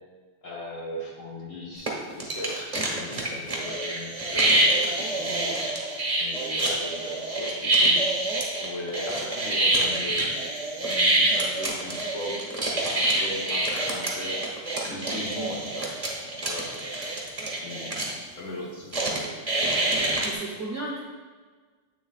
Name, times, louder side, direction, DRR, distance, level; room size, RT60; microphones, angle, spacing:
voice 1, 0.4-5.7 6.2-8.1 8.6-10.3 10.8-12.6 12.9-14.4 14.9-17.2 17.6-19.3 19.8-20.2, left 1 dB, 50° left, -3 dB, 1.3 m, -38 dB
sound 1, 1.9-2.0 2.2-18.1 18.9-20.3, right 2 dB, 25° right, 0.9 m, -26 dB
voice 2, 20.2-21.0, right 2 dB, 55° right, -3 dB, 0.9 m, -34 dB
8.3 x 6.9 x 2.4 m, 1.5 s
omnidirectional pair, 2.0 m